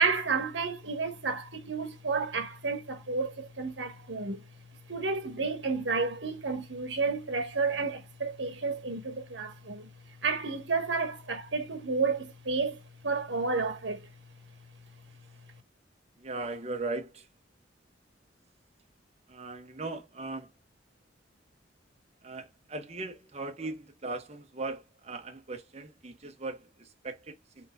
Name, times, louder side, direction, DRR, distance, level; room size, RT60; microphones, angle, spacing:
voice 1, 0.0-4.4 4.9-9.9 10.2-12.8 13.0-14.1, right 4 dB, 75° right, 1.2 m, -31 dB
voice 2, 16.2-17.3 19.3-20.5 22.2-27.7, right 3 dB, 35° right, 0.9 m, -39 dB
4.3 x 3.8 x 2.2 m
head